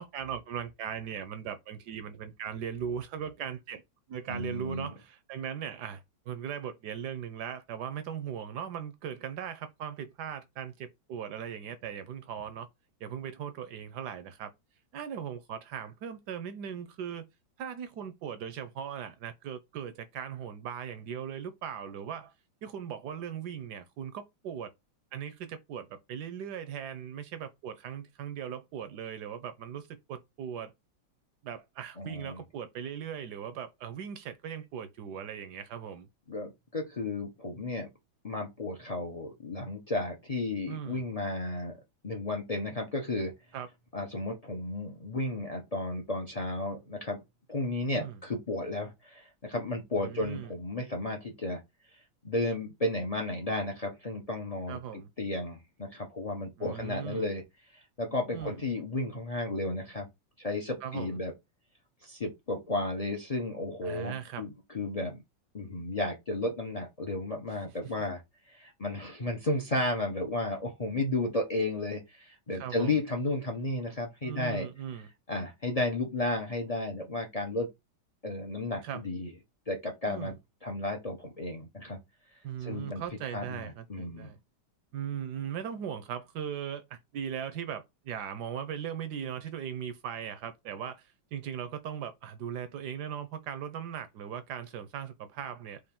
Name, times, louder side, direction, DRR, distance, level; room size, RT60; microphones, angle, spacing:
voice 1, 0.0-3.8 4.1-12.7 13.0-14.5 14.9-17.2 17.6-22.3 22.6-24.7 25.1-30.7 31.4-36.1 40.7-41.0 43.5-43.7 47.9-48.2 50.0-50.5 54.7-55.1 56.6-57.3 58.3-58.6 60.8-61.2 63.8-64.4 67.8-67.9 72.5-73.0 74.2-75.1 78.8-79.0 80.0-80.3 82.4-84.4 84.9-95.8, right 8 dB, 70° right, 1.0 m, -39 dB
voice 2, 4.3-4.9 32.0-32.4 36.3-37.9 38.2-41.8 42.0-43.3 43.9-47.2 47.5-51.6 52.2-57.4 57.7-60.1 60.4-61.3 62.0-65.2 65.5-68.2 68.5-74.7 75.3-77.7 78.2-79.3 79.7-80.3 80.6-82.0 82.6-83.0 83.3-84.3, left 2 dB, 65° left, 0.3 m, -33 dB
4.9 x 2.5 x 3.6 m
omnidirectional pair, 2.2 m